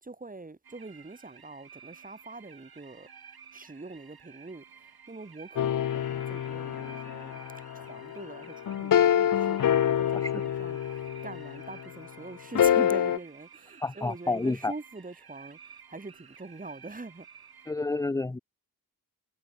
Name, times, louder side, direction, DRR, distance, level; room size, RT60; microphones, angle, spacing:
voice 1, 0.0-3.1 3.5-7.4 7.7-17.5, right 3 dB, 25° right, 1.2 m, -44 dB
sound 1, 0.6-17.7, right 7 dB, 80° right, 1.6 m, -53 dB
sound 2, 5.6-11.8 12.5-13.2, left 10 dB, 60° left, 0.5 m, -27 dB
voice 2, 13.8-14.7 17.7-18.4, left 3 dB, 10° left, 0.4 m, -29 dB
wide cardioid pair, 100°, 36 cm